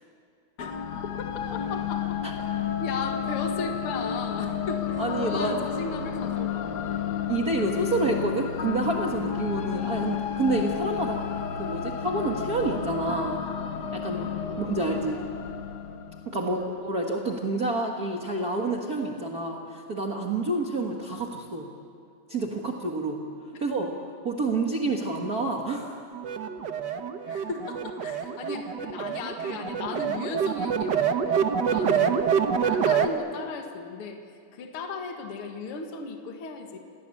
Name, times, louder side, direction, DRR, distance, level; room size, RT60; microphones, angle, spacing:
sound 1, 0.6-16.8, left 8 dB, 80° left, 0.9 m, -31 dB
voice 1, 1.6-2.2 2.8-6.7 9.7-9.9 14.5-14.7 16.3-16.5 23.5-23.6 27.3-32.2 32.6-34.2 34.5-36.8, left 4 dB, 50° left, 4 dB, 2.5 m, -36 dB
voice 2, 5.0-5.6 7.3-11.2 11.6-13.4 13.9-14.3 14.6-15.2 16.2-21.7 22.3-23.2 23.6-23.9 24.2-26.0, right 2 dB, 35° right, 0 dB, 1.7 m, -28 dB
sound 2, 26.1-33.1, right 7 dB, 60° right, 1.1 m, -26 dB
28.0 x 18.5 x 8.5 m, 2.3 s
omnidirectional pair, 3.4 m